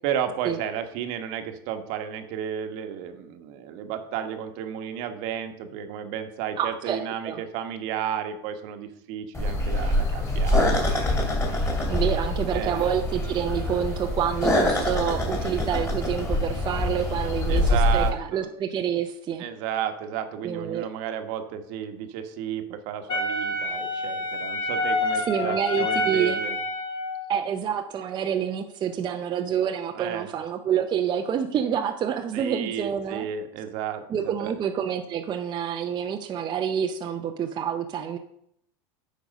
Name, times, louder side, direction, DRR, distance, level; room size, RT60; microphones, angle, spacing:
voice 1, 0.0-11.2 12.5-12.9 17.5-18.5 19.4-26.6 29.9-30.3 32.3-34.6, right 9 dB, 60° right, 7 dB, 1.2 m, -33 dB
voice 2, 6.6-7.4 11.9-19.4 20.4-20.9 25.2-26.4 27.3-33.3 34.1-38.2, right 8 dB, 30° right, 5 dB, 0.7 m, -28 dB
sound 1, 9.3-18.1, left 1 dB, 15° left, 2.7 m, -25 dB
Wind instrument woodwind instrument, 23.1-27.3, left 1 dB, 35° left, 1.9 m, -27 dB
9.1 x 5.2 x 5.3 m, 0.73 s
supercardioid pair, 120°, 15 cm